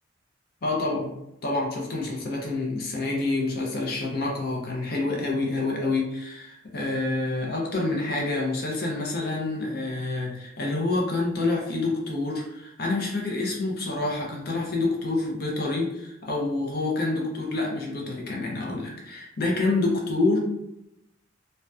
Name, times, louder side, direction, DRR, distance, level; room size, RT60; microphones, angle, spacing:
voice 1, 0.6-1.1 1.4-20.4, left 2 dB, 55° left, -2 dB, 0.5 m, -27 dB
2.7 x 2.1 x 2.3 m, 0.86 s
head